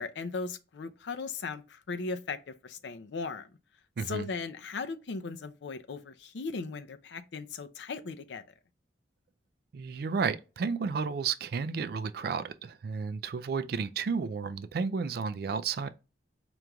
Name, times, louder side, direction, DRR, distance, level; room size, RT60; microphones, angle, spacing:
voice 1, 0.0-3.5 4.1-8.4, left 4 dB, 75° left, 0.5 m, -37 dB
voice 2, 4.0-4.3 9.7-15.9, right 5 dB, 55° right, 0.3 m, -32 dB
5.0 x 3.0 x 2.3 m
head